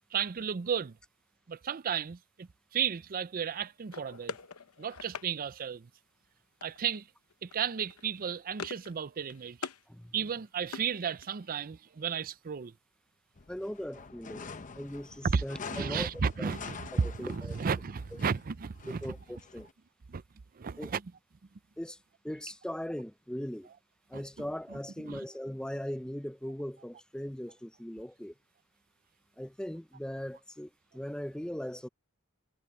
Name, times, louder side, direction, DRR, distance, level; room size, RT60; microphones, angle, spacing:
voice 1, 0.1-1.0 1.5-4.4 4.8-5.9 6.6-7.1 7.4-9.7 10.1-12.7 15.2-15.4 15.7-19.1 20.1-20.2 20.5-21.1 24.1-25.2, right 6 dB, 40° right, 0.5 m, -34 dB
sound 1, 3.9-5.3 6.6-7.0 7.3-7.6 7.9-8.9 9.2-9.8 10.2-11.5, left 5 dB, 85° left, 0.8 m, -43 dB
sound 2, 13.4-19.7, left 5 dB, 35° left, 0.8 m, -46 dB
voice 2, 13.5-14.5 14.7-16.1 16.4-16.5 17.0-17.6 19.0-19.7 20.8-20.9 21.8-22.0 22.2-23.7 24.1-28.3 29.4-31.9, equal, 5° left, 0.6 m, -39 dB
head